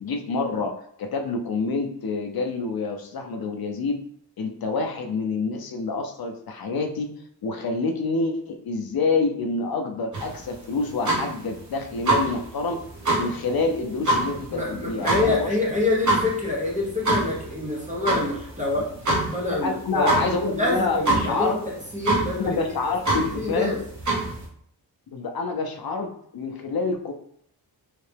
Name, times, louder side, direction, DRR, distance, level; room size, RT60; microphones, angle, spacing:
voice 1, 0.0-4.0 4.4-7.1 7.4-12.8 13.2-15.6 19.6-21.6 22.4-23.8 25.1-27.1, left 3 dB, 60° left, 3 dB, 0.5 m, -27 dB
sound 1, 10.1-24.5, right 2 dB, 40° right, 1.0 m, -27 dB
voice 2, 14.5-18.9 19.3-20.1 20.5-22.6 23.1-23.8, left 2 dB, 15° right, -5 dB, 0.9 m, -26 dB
3.2 x 2.8 x 3.3 m, 0.67 s
wide cardioid pair, 180°, 43 cm